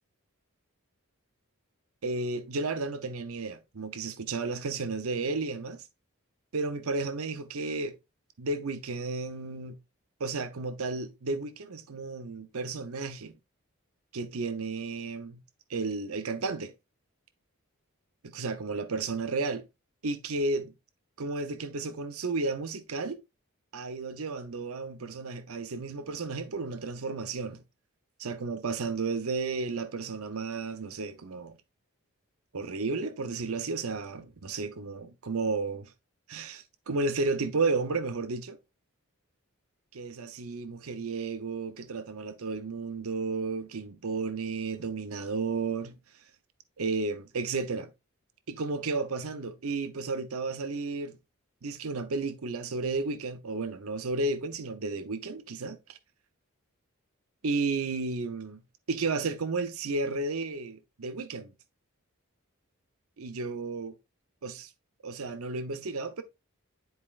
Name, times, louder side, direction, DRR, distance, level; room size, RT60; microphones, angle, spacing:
voice 1, 2.0-5.9 6.5-8.0 8.4-9.8 10.2-13.3 14.1-15.4 15.7-16.7 18.2-19.6 20.0-20.7 21.2-23.2 23.7-27.6 28.2-31.6 32.5-35.9 36.3-38.6 39.9-45.9 46.8-47.9 48.5-51.1 51.6-56.0 57.4-58.6 58.9-61.5 63.2-64.0 64.4-64.7 65.0-66.2, right 3 dB, 80° right, 0.7 m, -33 dB
10.5 x 4.3 x 2.4 m
head